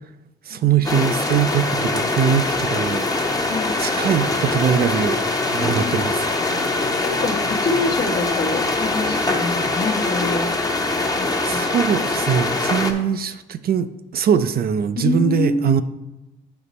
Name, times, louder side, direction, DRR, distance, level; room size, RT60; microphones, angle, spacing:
voice 1, 0.5-3.4 3.8-5.2 5.5-6.2 10.9-11.1 11.4-15.8, right 8 dB, 50° right, 11 dB, 0.4 m, -22 dB
sound 1, 0.8-12.9, left 2 dB, 20° left, 0.8 m, -23 dB
voice 2, 5.5-6.0 7.0-10.5 11.1-11.6 15.0-15.7, left 3 dB, 55° left, 4 dB, 1.0 m, -26 dB
6.9 x 5.0 x 4.1 m, 0.98 s
cardioid pair, 90°, 20 cm